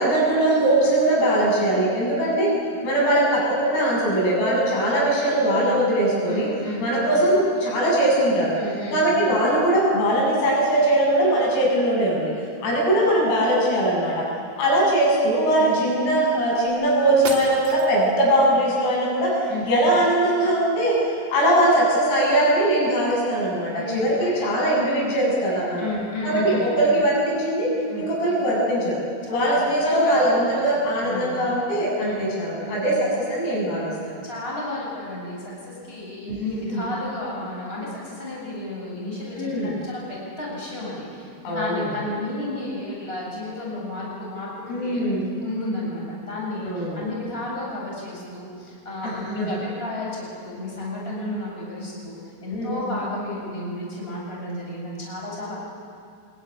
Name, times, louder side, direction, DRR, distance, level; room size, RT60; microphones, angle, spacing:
voice 1, 0.0-2.5 2.8-6.5 6.8-8.5 8.9-12.3 12.6-14.3 14.6-21.0 21.3-25.9 26.2-27.7 28.0-29.0 29.3-34.2 36.7-36.8 39.4-39.7 41.4-41.9 44.7-45.3 46.6-47.0 49.0-49.5 52.5-52.8, right 1 dB, 75° left, -3 dB, 10.0 m, -21 dB
voice 2, 6.2-6.9 8.6-9.0 15.6-15.8 19.5-19.6 23.7-24.7 25.8-26.7 27.9-28.0 29.2-31.3 32.0-32.2 32.6-32.8 34.2-45.0 45.4-52.1 52.4-55.6, left 2 dB, 10° left, -4 dB, 7.6 m, -32 dB
sound 1, 16.7-16.8 17.2-18.2, right 4 dB, 40° right, 4.1 m, -34 dB
27.0 x 21.0 x 10.0 m, 2.3 s
omnidirectional pair, 6.0 m